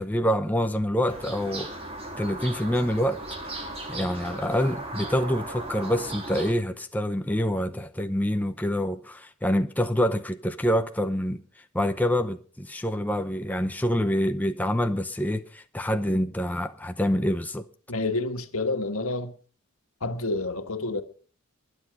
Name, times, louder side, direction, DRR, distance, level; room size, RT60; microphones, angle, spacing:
voice 1, 0.0-1.7 2.2-3.2 3.9-11.4 11.7-17.7, equal, 5° left, 0.7 m, -26 dB
sound 1, 1.1-6.5, right 2 dB, 25° right, 3.2 m, -37 dB
voice 2, 17.9-19.3 20.0-21.0, left 2 dB, 80° left, 1.7 m, -28 dB
22.0 x 8.3 x 5.1 m
head